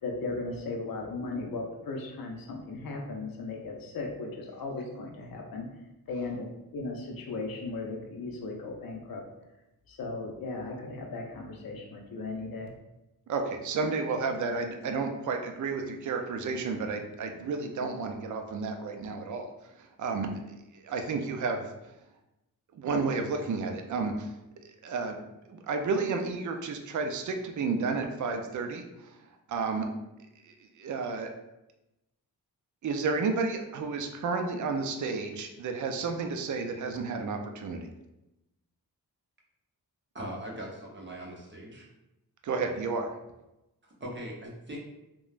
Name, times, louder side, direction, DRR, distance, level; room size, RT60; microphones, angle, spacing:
voice 1, 0.0-5.7 6.1-9.2 9.9-12.7, left 3 dB, 65° left, 1 dB, 0.5 m, -37 dB
voice 2, 13.3-19.5 19.8-20.3 20.7-21.6 22.7-24.3 24.8-25.2 25.5-29.2 29.5-29.9 30.4-31.3 32.8-37.9 42.4-43.1, right 4 dB, 50° right, 5 dB, 0.4 m, -31 dB
voice 3, 40.1-41.9 44.0-44.8, right 1 dB, 30° right, -3 dB, 0.8 m, -40 dB
3.0 x 2.2 x 2.4 m, 0.94 s
cardioid pair, 65°, 38 cm